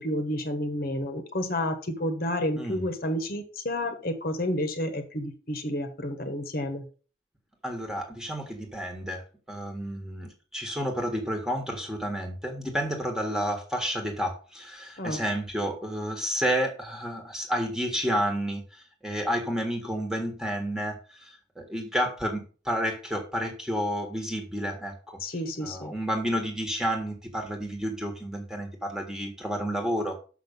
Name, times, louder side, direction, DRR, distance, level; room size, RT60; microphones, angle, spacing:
voice 1, 0.0-6.9 15.0-15.2 25.2-25.9, left 1 dB, 50° left, 7 dB, 1.3 m, -30 dB
voice 2, 7.6-25.2 25.6-30.2, equal, 5° right, 2 dB, 1.6 m, -30 dB
6.9 x 5.8 x 5.4 m, 0.36 s
head